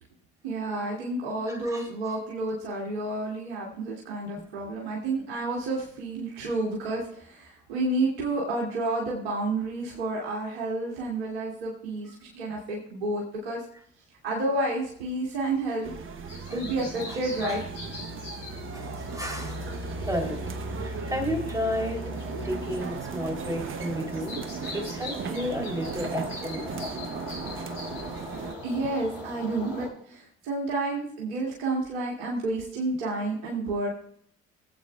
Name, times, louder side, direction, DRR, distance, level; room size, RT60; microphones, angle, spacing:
voice 1, 0.4-13.6 14.2-15.9 16.5-17.6 22.3-22.5 28.6-33.9, right 2 dB, 70° right, -4 dB, 2.4 m, -30 dB
voice 2, 1.5-1.9 4.4-4.5 16.5-16.6 17.1-17.6 18.7-19.6 20.0-20.4 20.8-22.2 22.4-24.4 24.7-26.8, equal, 10° right, 2 dB, 3.4 m, -32 dB
sound 1, 15.2-29.9, left 3 dB, 70° left, 5.8 m, -40 dB
sound 2, 15.8-28.6, right 6 dB, 40° right, 1.0 m, -37 dB
22.0 x 8.3 x 2.4 m, 0.64 s
figure-of-eight pair, 50°, 33 cm